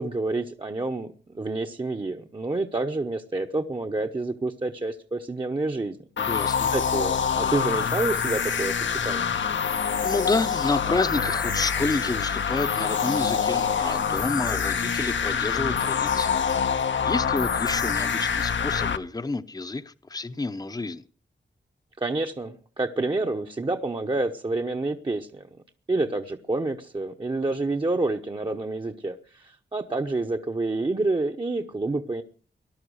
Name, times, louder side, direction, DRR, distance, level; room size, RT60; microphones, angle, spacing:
voice 1, 0.0-6.0 6.7-9.3 22.0-25.5 25.9-32.2, right 2 dB, 25° right, 0.9 m, -28 dB
sound 1, 6.2-19.0, left 7 dB, 85° left, 1.1 m, -25 dB
voice 2, 6.2-6.7 10.0-16.4 17.0-21.0, left 3 dB, 20° left, 0.8 m, -29 dB
19.0 x 12.0 x 6.4 m
wide cardioid pair, 155°, 19 cm